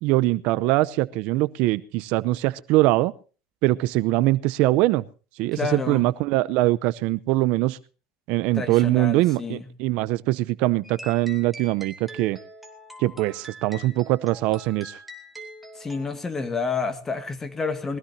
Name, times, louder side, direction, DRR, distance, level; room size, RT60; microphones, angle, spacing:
voice 1, 0.0-3.1 3.6-5.0 5.4-7.8 8.3-12.4 13.0-15.0, right 18 dB, 60° right, 17 dB, 0.7 m, -22 dB
voice 2, 5.5-6.0 8.5-9.7 15.8-18.0, left 4 dB, 15° left, 9 dB, 2.1 m, -29 dB
sound 1, 10.8-16.1, right 1 dB, 5° right, 3.2 m, -43 dB
21.5 x 16.0 x 2.8 m, 0.35 s
supercardioid pair, 135°, 2 cm